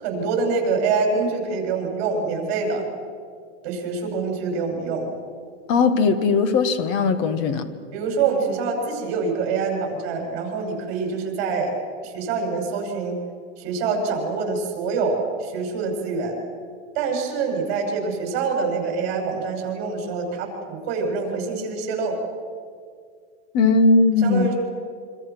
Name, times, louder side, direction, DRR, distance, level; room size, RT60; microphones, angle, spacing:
voice 1, 0.0-2.9 3.6-5.1 7.9-11.7 12.0-13.2 13.6-16.4 16.9-22.2 24.2-24.5, right 4 dB, 40° right, 1 dB, 7.4 m, -25 dB
voice 2, 5.7-7.7 23.5-24.5, left 4 dB, 35° left, 11 dB, 1.6 m, -18 dB
26.0 x 25.0 x 6.3 m, 2.1 s
supercardioid pair, 165°, 34 cm